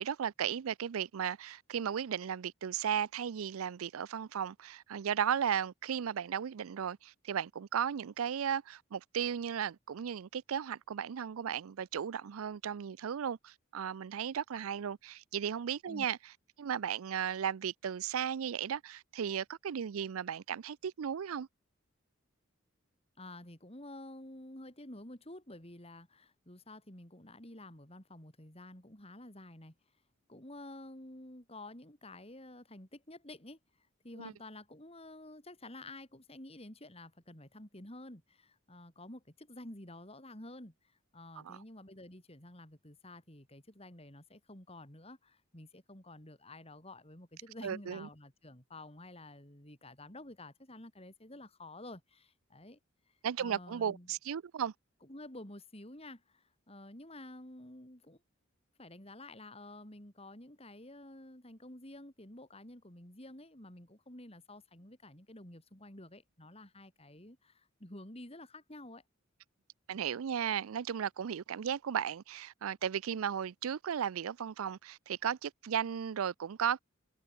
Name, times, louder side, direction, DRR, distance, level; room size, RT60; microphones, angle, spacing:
voice 1, 0.0-16.2 16.6-21.5 34.2-34.3 41.4-41.6 47.6-48.1 53.2-54.7 69.9-76.8, right 8 dB, 90° right, 0.4 m, -35 dB
voice 2, 23.2-29.7 30.3-33.6 34.0-40.7 41.1-52.8 53.4-54.1 55.0-58.2 58.8-69.0, left 1 dB, 30° left, 4.6 m, -50 dB
head